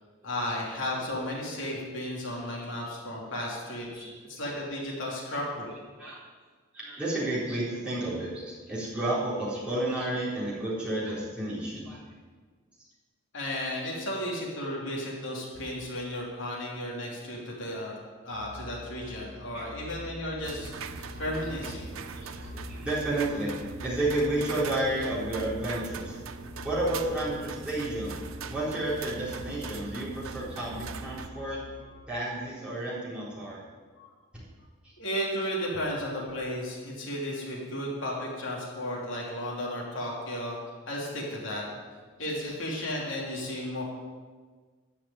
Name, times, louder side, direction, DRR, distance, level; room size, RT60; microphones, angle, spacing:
voice 1, 0.2-5.7 13.3-21.9 34.0-34.1 35.0-40.6 40.9-41.6 42.2-43.8, left 1 dB, 65° left, -3 dB, 3.2 m, -34 dB
voice 2, 2.3-2.7 3.9-4.2 6.0-6.2 6.7-12.0 17.2-17.4 19.5-19.6 20.0-20.1 21.4-21.5 22.1-26.2 26.6-28.2 28.5-31.6 32.1-33.6 34.8-34.9, right 1 dB, 5° right, -9 dB, 3.8 m, -31 dB
sound 1, 18.3-32.0, left 2 dB, 45° left, 2.0 m, -46 dB
sound 2, 20.4-31.3, right 5 dB, 80° right, 0.7 m, -41 dB
13.5 x 5.9 x 9.1 m, 1.5 s
head